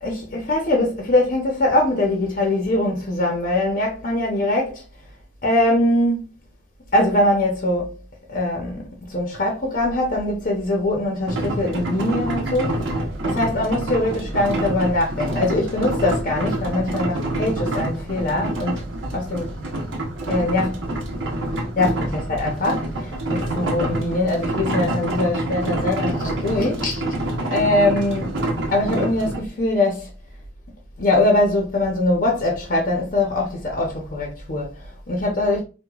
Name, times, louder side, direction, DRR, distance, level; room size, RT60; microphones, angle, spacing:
voice 1, 0.0-4.8 5.4-6.2 6.9-8.0 8.3-13.0 13.2-18.8 19.1-19.5 20.3-20.7 21.8-28.4 28.7-30.1 31.0-35.6, left 1 dB, 45° left, 0.6 m, -22 dB
sound 1, 11.3-29.4, right 1 dB, 90° right, 0.8 m, -27 dB
4.7 x 2.1 x 2.3 m
head